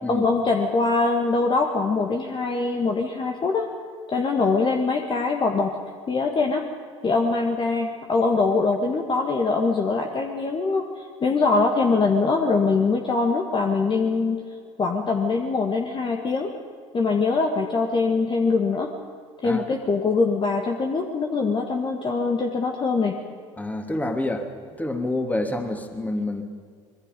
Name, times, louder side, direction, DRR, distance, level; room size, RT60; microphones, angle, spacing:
voice 1, 0.1-3.7 4.1-5.8 6.1-6.7 7.0-10.9 11.2-14.4 14.8-16.5 16.9-18.9 19.4-23.2, left 4 dB, 30° left, 3 dB, 2.0 m, -23 dB
voice 2, 23.6-24.5 24.8-26.4, left 2 dB, 10° left, 5 dB, 3.0 m, -27 dB
26.0 x 22.0 x 5.4 m, 2.1 s
figure-of-eight pair, 70°, 16 cm